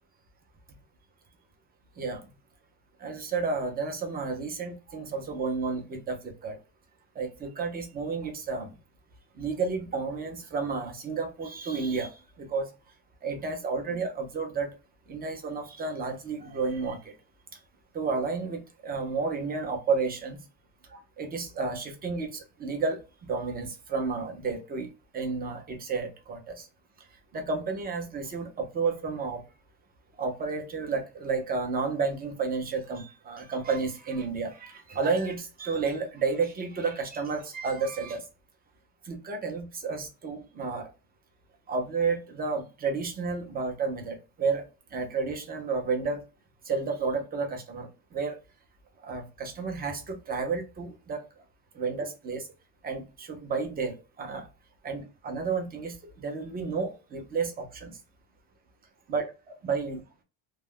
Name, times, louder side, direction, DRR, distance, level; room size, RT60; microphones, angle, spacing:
voice 1, 3.0-6.6 7.2-8.7 9.4-12.7 13.2-14.7 15.1-17.1 17.9-20.4 20.9-26.7 27.3-29.4 30.2-38.2 39.0-40.9 41.7-44.6 44.9-46.2 46.6-48.3 49.0-51.2 51.7-52.5 52.8-54.5 54.8-58.0 59.1-60.0, right 4 dB, 20° right, 0.5 m, -31 dB
2.3 x 2.0 x 3.5 m
cardioid pair, 140°, 48 cm